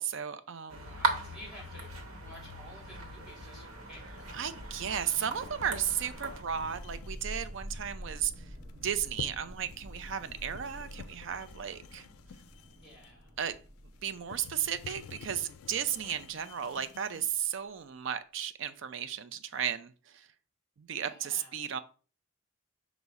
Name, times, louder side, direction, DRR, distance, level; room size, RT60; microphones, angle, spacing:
voice 1, 0.0-0.8 4.3-12.1 13.4-13.6 14.0-20.3 20.8-21.8, right 9 dB, 60° right, 11 dB, 0.4 m, -34 dB
sound 1, 0.7-6.4, right 3 dB, 85° right, 0.9 m, -38 dB
voice 2, 0.8-4.3 12.7-13.3 16.0-16.2 21.0-21.6, equal, 5° right, -2 dB, 2.0 m, -52 dB
sound 2, 4.0-17.0, equal, 45° right, 0.9 m, -48 dB
sound 3, 4.1-17.5, left 7 dB, 85° left, 0.3 m, -51 dB
5.4 x 2.0 x 4.6 m, 0.38 s
head